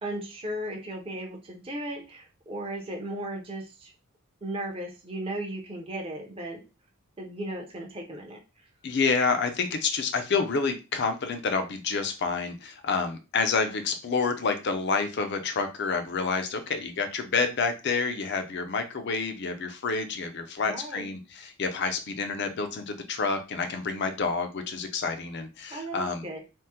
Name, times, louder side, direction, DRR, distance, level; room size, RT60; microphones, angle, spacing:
voice 1, 0.0-3.9 4.4-6.6 7.2-8.4 20.7-21.1 25.7-26.4, right 1 dB, 25° right, 1 dB, 0.5 m, -36 dB
voice 2, 8.8-26.2, left 4 dB, 50° left, 7 dB, 0.5 m, -28 dB
3.5 x 2.0 x 2.8 m, 0.29 s
head